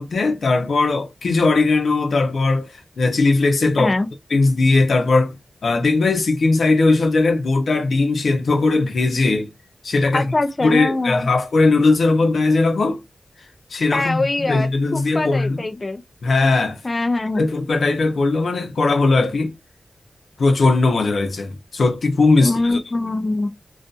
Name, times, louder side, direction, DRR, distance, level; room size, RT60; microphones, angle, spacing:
voice 1, 0.0-3.9 4.3-5.3 5.6-9.5 9.8-10.3 10.6-13.0 13.7-15.6 16.2-16.8 17.4-19.6 20.4-22.8, left 3 dB, 90° left, 0.7 m, -18 dB
voice 2, 10.1-11.3 13.9-16.0 16.8-17.4 22.4-23.5, left 2 dB, 30° left, 0.4 m, -23 dB
2.6 x 2.3 x 2.4 m
wide cardioid pair, 125°, 0 cm